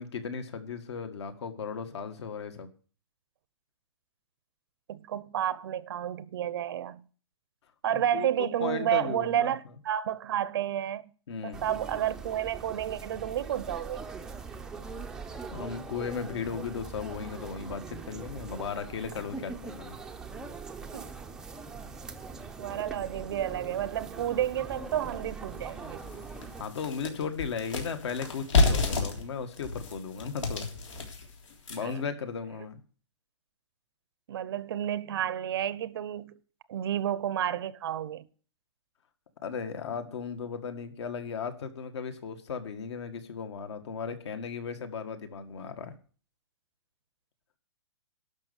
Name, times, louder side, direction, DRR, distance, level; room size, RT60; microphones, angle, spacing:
voice 1, 0.0-2.7 7.9-9.5 11.3-11.6 15.5-20.0 26.6-30.6 31.7-32.8 39.4-45.9, left 6 dB, 65° left, 1.8 m, -36 dB
voice 2, 4.9-7.0 7.8-11.1 11.4-14.0 20.9-21.2 22.6-26.1 31.8-32.0 34.3-36.4 36.7-38.3, right 11 dB, 50° right, 0.7 m, -31 dB
sound 1, 11.5-26.6, right 4 dB, 5° right, 0.5 m, -42 dB
sound 2, 24.9-25.0 25.5-25.6 26.0-32.0, left 3 dB, 90° left, 3.5 m, -30 dB
12.0 x 5.5 x 8.0 m
hypercardioid pair, 160°, 16 cm